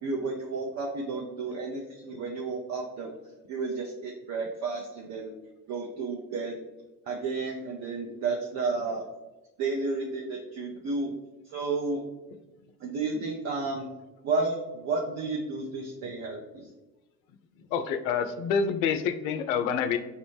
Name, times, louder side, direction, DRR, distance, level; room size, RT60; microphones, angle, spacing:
voice 1, 0.0-3.1 3.5-5.3 5.7-6.6 7.1-9.1 9.6-11.2 11.4-12.0 12.8-13.9 14.2-16.7, right 3 dB, 35° right, 0 dB, 0.5 m, -32 dB
voice 2, 17.7-20.0, left 6 dB, 60° left, 9 dB, 0.5 m, -27 dB
5.2 x 2.0 x 3.1 m, 1.1 s
figure-of-eight pair, 65°, 48 cm